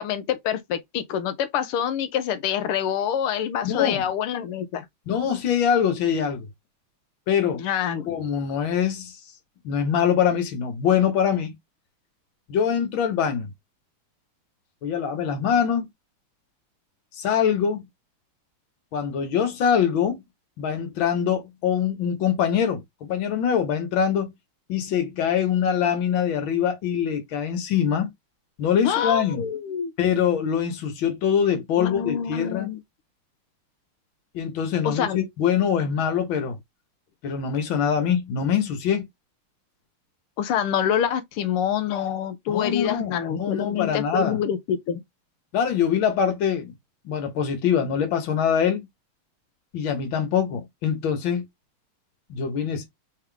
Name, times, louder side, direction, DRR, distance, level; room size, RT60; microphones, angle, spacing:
voice 1, 0.0-4.9 7.6-8.1 28.8-29.9 31.8-32.8 34.8-35.2 40.4-45.0, left 9 dB, 80° left, 1.7 m, -26 dB
voice 2, 3.6-4.0 5.1-6.5 7.3-7.6 8.1-9.1 9.6-11.5 12.5-13.5 14.8-15.9 17.2-17.8 18.9-20.2 20.6-24.3 24.7-28.1 28.6-29.5 30.0-32.7 34.3-36.6 37.2-39.1 42.5-44.4 45.5-46.7 47.1-48.8 49.7-51.5 52.3-52.9, left 8 dB, 65° left, 1.9 m, -23 dB
4.1 x 3.6 x 3.4 m
omnidirectional pair, 2.4 m